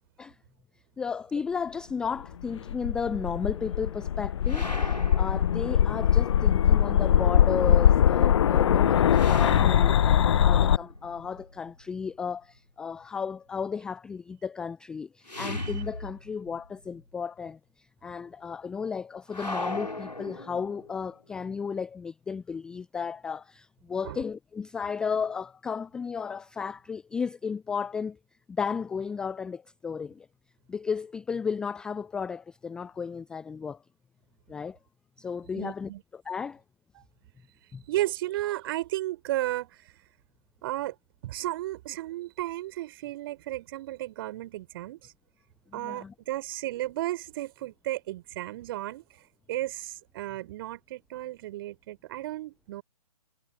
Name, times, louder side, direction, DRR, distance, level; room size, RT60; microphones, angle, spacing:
voice 1, 1.0-28.2 28.5-30.3 30.7-33.8 34.5-34.8 35.2-36.6 37.7-37.8 45.7-46.1, left 6 dB, 5° left, 0.4 m, -34 dB
sound 1, 2.4-10.8, left 9 dB, 45° left, 0.8 m, -22 dB
sound 2, 4.4-6.4 9.1-12.1 15.3-16.7 16.9-17.0 19.3-21.1, left 1 dB, 90° left, 3.3 m, -38 dB
voice 2, 35.5-36.0 36.9-37.0 37.9-39.9 40.6-41.0 41.2-45.1 45.7-49.2 49.5-52.8, right 15 dB, 35° right, 5.7 m, -34 dB
figure-of-eight pair, 130°, 20 cm